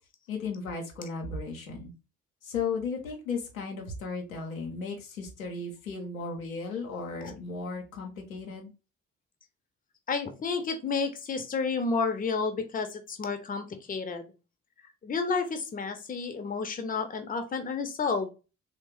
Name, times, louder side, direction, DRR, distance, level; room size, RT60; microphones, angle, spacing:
voice 1, 0.3-1.9 2.4-8.7, left 4 dB, 85° left, 1 dB, 0.7 m, -35 dB
voice 2, 10.1-14.3 15.0-18.3, left 4 dB, 20° left, 7 dB, 0.6 m, -31 dB
3.2 x 2.1 x 3.0 m, 0.30 s
figure-of-eight pair, 40°, 40 cm